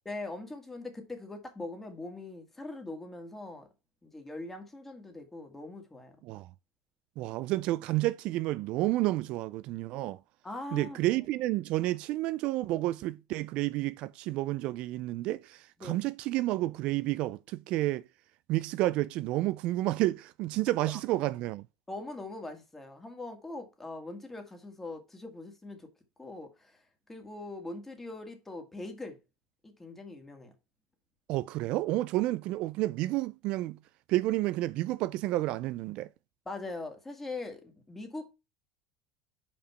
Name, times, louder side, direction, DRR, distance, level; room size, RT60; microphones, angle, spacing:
voice 1, 0.1-3.7 4.0-6.2 10.4-11.2 15.8-16.0 21.9-25.9 26.2-29.2 29.6-30.5 36.5-38.3, left 2 dB, 10° left, 2.0 m, -42 dB
voice 2, 7.2-10.2 10.7-18.0 18.5-21.7 31.3-33.8 34.1-36.1, right 17 dB, 60° right, 0.3 m, -30 dB
5.4 x 5.0 x 5.6 m
supercardioid pair, 105°, 2 cm